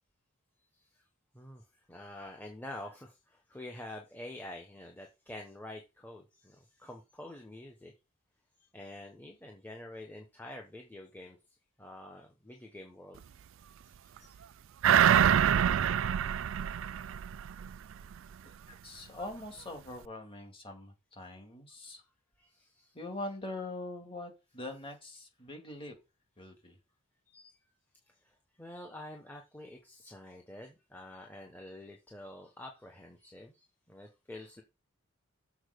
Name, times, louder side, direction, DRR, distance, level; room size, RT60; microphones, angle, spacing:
voice 1, 1.3-7.9 8.7-11.4 11.8-13.2 13.8-14.4 22.4-22.9 27.3-27.5 28.2-34.6, left 1 dB, 10° left, 1.0 m, -47 dB
sound 1, 14.8-17.7 18.1-18.2, right 9 dB, 60° right, 0.3 m, -25 dB
voice 2, 18.4-22.0 22.9-25.9 26.4-26.8, left 2 dB, 25° left, 2.3 m, -43 dB
7.2 x 4.4 x 6.6 m
head